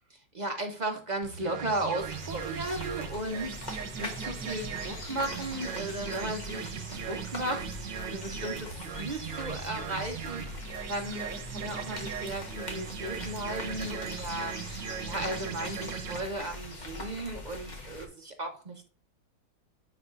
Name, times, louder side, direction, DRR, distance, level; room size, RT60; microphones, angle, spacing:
voice 1, 0.3-10.4 10.9-14.5 15.0-18.9, right 1 dB, 50° right, 3 dB, 0.5 m, -35 dB
sound 1, 1.2-16.2, right 8 dB, 90° right, 1.5 m, -39 dB
sound 2, 2.0-18.1, left 2 dB, 30° left, 0.9 m, -42 dB
10.0 x 4.3 x 2.4 m, 0.36 s
omnidirectional pair, 1.9 m